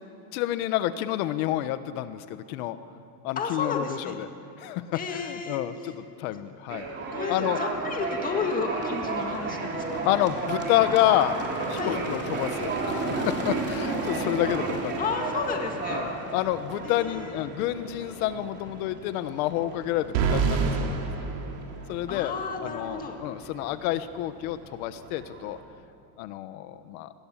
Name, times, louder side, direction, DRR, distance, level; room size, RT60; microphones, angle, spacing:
voice 1, 0.3-2.8 3.2-4.3 4.6-6.9 7.3-7.6 10.0-11.4 11.7-15.0 15.9-21.0 21.9-22.3 22.6-25.6 26.2-27.1, left 13 dB, 60° left, 11 dB, 1.4 m, -29 dB
voice 2, 3.4-4.2 4.9-5.6 7.1-10.0 11.8-12.0 15.0-16.0 16.8-17.5 22.1-23.2, left 4 dB, 15° left, 3 dB, 1.9 m, -32 dB
sound 1, 6.7-25.6, right 3 dB, 20° right, 3.4 m, -33 dB
sound 2, 20.1-22.3, right 5 dB, 85° right, 4.2 m, -27 dB
28.0 x 21.5 x 7.5 m, 2.7 s
cardioid pair, 180°, 48 cm